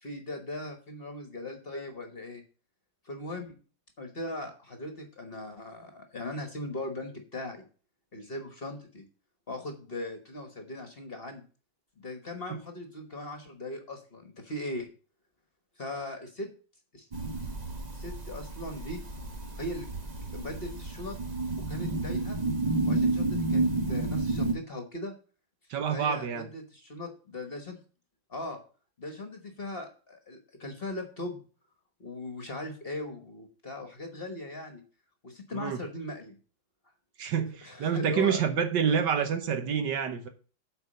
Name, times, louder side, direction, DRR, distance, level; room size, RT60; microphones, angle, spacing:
voice 1, 0.0-2.4 3.0-3.5 4.0-7.6 8.1-9.0 9.5-11.4 12.0-14.9 15.8-16.5 16.9-17.1 17.9-19.0 19.5-19.9 20.3-21.2 21.7-22.4 22.9-25.1 25.9-27.8 28.3-28.6 29.0-31.4 32.0-34.8 35.2-36.4 37.6-38.4 38.9-39.0, left 2 dB, 35° left, 1.3 m, -39 dB
sound 1, 17.1-24.5, right 2 dB, 30° right, 0.9 m, -30 dB
voice 2, 25.7-26.5 35.5-35.8 37.2-40.3, right 7 dB, 70° right, 1.6 m, -28 dB
8.1 x 4.6 x 6.5 m
omnidirectional pair, 2.0 m